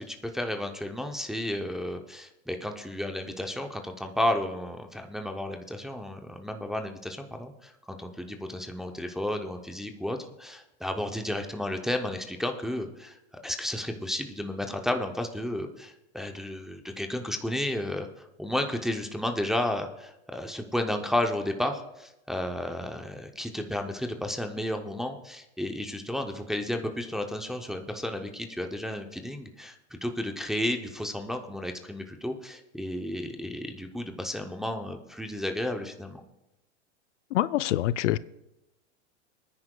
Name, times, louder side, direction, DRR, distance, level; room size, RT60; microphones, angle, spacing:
voice 1, 0.0-29.8 30.0-36.2, left 1 dB, ahead, 0.5 m, -32 dB
voice 2, 37.3-38.2, left 14 dB, 85° left, 0.5 m, -25 dB
24.5 x 9.8 x 2.2 m
supercardioid pair, 145°, 35 cm